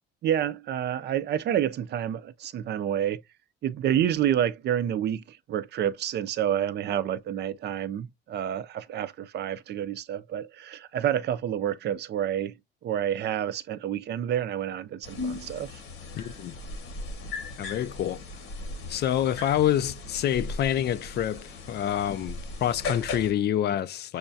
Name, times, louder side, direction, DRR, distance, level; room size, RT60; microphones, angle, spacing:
voice 1, 0.2-3.2 3.6-12.5 12.8-15.8, right 10 dB, 55° right, 0.5 m, -29 dB
sound 1, 15.0-23.3, left 3 dB, 80° left, 1.4 m, -37 dB
voice 2, 16.2-16.5 17.6-18.2 18.9-24.2, left 11 dB, 55° left, 0.4 m, -27 dB
6.4 x 2.3 x 2.6 m
cardioid pair, 90°, 21 cm